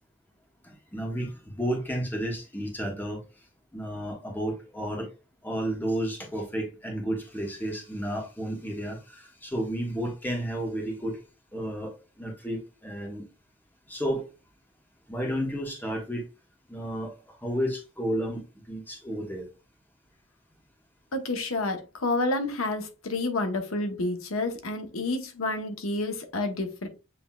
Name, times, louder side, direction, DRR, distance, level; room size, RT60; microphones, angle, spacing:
voice 1, 0.6-3.2 3.7-5.1 5.4-11.2 11.5-13.3 13.9-14.3 15.1-16.2 16.7-19.5, equal, 10° left, 1.3 m, -32 dB
voice 2, 21.1-26.9, left 2 dB, 90° left, 0.9 m, -29 dB
7.5 x 3.1 x 2.3 m
head